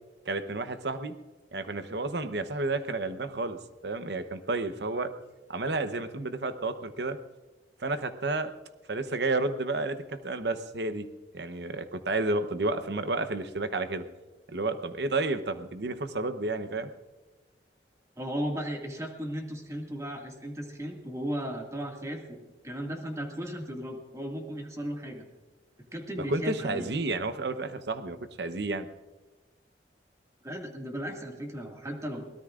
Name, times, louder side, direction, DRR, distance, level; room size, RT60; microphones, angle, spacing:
voice 1, 0.3-1.1 1.5-5.1 5.5-7.2 7.8-8.5 8.9-11.0 11.3-14.0 14.5-16.9 26.3-28.9, right 2 dB, 65° right, 9 dB, 0.9 m, -31 dB
voice 2, 18.2-25.3 25.9-26.9 30.4-32.3, equal, 15° right, 1 dB, 2.0 m, -36 dB
23.0 x 17.5 x 2.5 m, 1.2 s
head